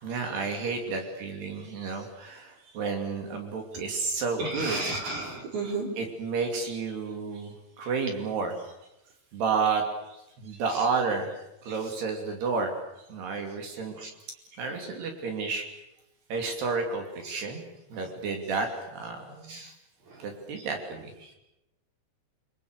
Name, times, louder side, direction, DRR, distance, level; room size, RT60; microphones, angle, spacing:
voice 1, 0.0-5.1 6.0-8.6 9.3-11.3 11.6-12.7 13.1-14.0 14.6-15.6 16.3-17.6 17.9-19.6 20.2-21.3, right 4 dB, 70° right, 4 dB, 4.9 m, -31 dB
voice 2, 4.4-5.9 14.0-14.1 17.2-17.4 19.5-19.7 20.1-20.3, right 3 dB, 45° right, 1 dB, 5.4 m, -33 dB
29.5 x 23.0 x 6.8 m, 0.90 s
omnidirectional pair, 4.9 m